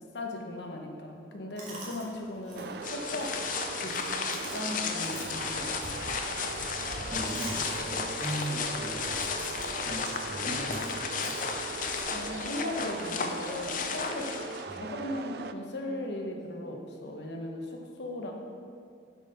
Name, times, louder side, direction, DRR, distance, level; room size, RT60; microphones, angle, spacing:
voice 1, 0.1-3.3 3.8-3.9 4.3-5.7 12.1-14.3 14.8-18.3, left 1 dB, 75° left, 1 dB, 1.1 m, -37 dB
Chewing mastication, 1.6-12.0, right 2 dB, 45° right, 1.9 m, -47 dB
sound 1, 2.6-15.5, right 5 dB, 60° right, 0.4 m, -40 dB
sound 2, 2.8-14.8, left 5 dB, 50° left, 0.5 m, -34 dB
voice 2, 6.7-11.4 14.6-14.8, right 1 dB, ahead, -12 dB, 1.5 m, -39 dB
8.1 x 5.4 x 5.6 m, 2.3 s
head